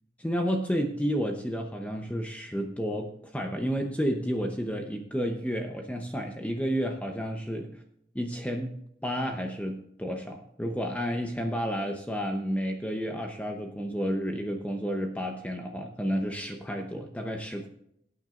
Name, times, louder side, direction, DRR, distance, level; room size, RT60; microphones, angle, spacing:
voice 1, 0.2-7.8 8.1-8.8 9.0-17.7, equal, 10° left, 3 dB, 0.8 m, -31 dB
17.5 x 9.2 x 2.5 m, 0.74 s
head